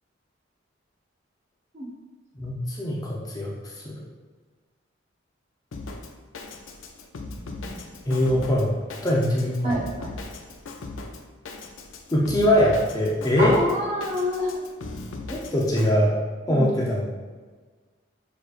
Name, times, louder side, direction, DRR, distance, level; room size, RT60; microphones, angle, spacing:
voice 1, 2.4-3.5 3.8-3.9 8.1-9.8 12.1-13.6 15.3-16.1 16.5-17.1, left 1 dB, 20° left, -4 dB, 0.7 m, -22 dB
Drum kit, 5.7-15.9, left 3 dB, 85° left, 0.5 m, -39 dB
voice 2, 7.3-7.8 9.6-10.1 13.4-14.6 16.5-16.9, equal, 35° right, -3 dB, 0.9 m, -28 dB
6.7 x 3.1 x 2.5 m, 1.4 s
head